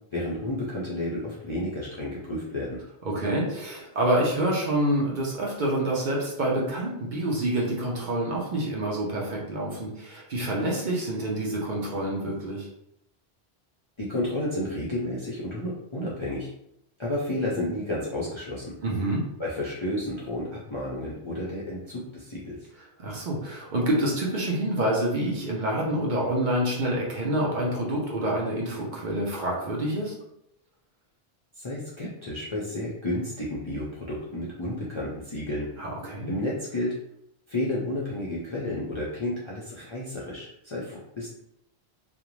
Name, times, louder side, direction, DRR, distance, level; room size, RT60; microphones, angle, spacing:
voice 1, 0.1-2.8 14.0-16.5 17.0-18.7 19.4-22.6 31.6-35.7 36.3-36.9 37.5-41.3, left 1 dB, 45° left, -7 dB, 0.4 m, -31 dB
voice 2, 3.0-12.7 18.8-19.2 23.0-30.1 35.8-36.3, right 1 dB, 55° right, -3 dB, 0.7 m, -27 dB
2.5 x 2.0 x 3.0 m, 0.78 s
omnidirectional pair, 1.1 m